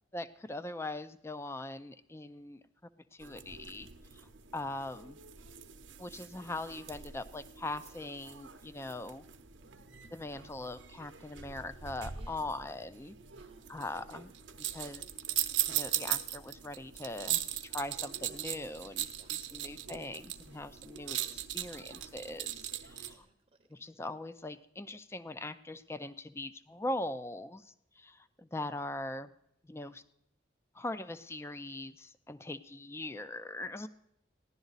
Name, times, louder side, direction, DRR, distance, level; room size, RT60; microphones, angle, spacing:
voice 1, 0.1-2.6 3.1-3.9 4.5-5.2 6.0-9.2 10.1-13.2 13.7-14.3 14.6-15.1 15.7-23.3 23.7-29.3 29.7-30.0 30.7-33.9, left 2 dB, 15° left, 13 dB, 0.4 m, -41 dB
sound 1, 3.2-23.1, right 12 dB, 85° right, 0.8 m, -40 dB
voice 2, 9.6-10.1 12.1-12.6 13.3-13.9 19.1-19.8 23.0-23.3, right 2 dB, 35° right, 5 dB, 0.7 m, -63 dB
15.0 x 11.5 x 4.0 m, 0.77 s
head